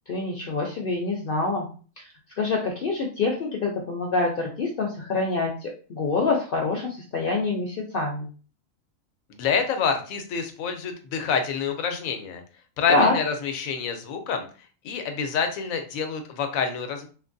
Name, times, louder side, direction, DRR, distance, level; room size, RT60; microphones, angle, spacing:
voice 1, 0.1-1.7 2.0-2.1 2.4-8.3 12.9-13.1, left 3 dB, 60° left, 0 dB, 0.6 m, -26 dB
voice 2, 9.3-12.4 12.8-14.5 14.8-17.1, left 6 dB, 85° left, 6 dB, 1.0 m, -27 dB
2.9 x 2.4 x 2.5 m, 0.38 s
omnidirectional pair, 1.4 m